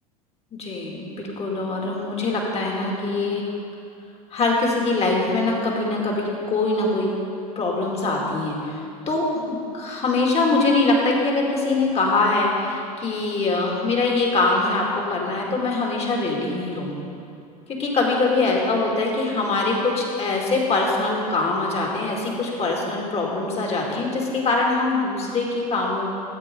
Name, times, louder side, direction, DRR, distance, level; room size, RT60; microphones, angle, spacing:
voice 1, 0.6-3.5 4.3-7.2 7.6-16.9 17.8-26.1, left 3 dB, 35° left, -1 dB, 2.4 m, -23 dB
14.0 x 7.9 x 3.8 m, 2.5 s
hypercardioid pair, 80°, 19 cm